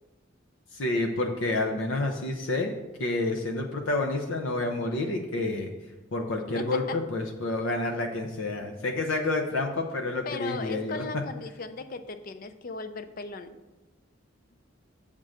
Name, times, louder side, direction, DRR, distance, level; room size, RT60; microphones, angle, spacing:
voice 1, 0.7-2.7 3.0-5.7 6.1-11.0, left 2 dB, 85° left, 3 dB, 0.7 m, -29 dB
voice 2, 6.6-7.0 10.3-13.5, left 4 dB, 45° left, 10 dB, 0.5 m, -37 dB
7.5 x 3.7 x 6.5 m, 1.1 s
head